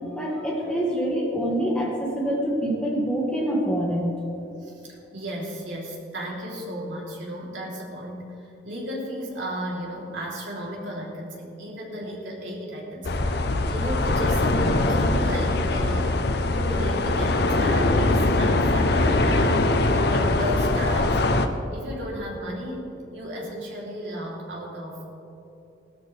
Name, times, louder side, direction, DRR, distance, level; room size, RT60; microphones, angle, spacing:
voice 1, 0.1-4.1, right 1 dB, 5° left, -3 dB, 2.0 m, -25 dB
voice 2, 4.6-16.2 16.5-21.4 21.7-25.1, equal, 75° right, -3 dB, 3.2 m, -34 dB
sound 1, 13.0-21.5, left 2 dB, 55° left, 0.7 m, -22 dB
17.5 x 13.0 x 3.3 m, 2.9 s
head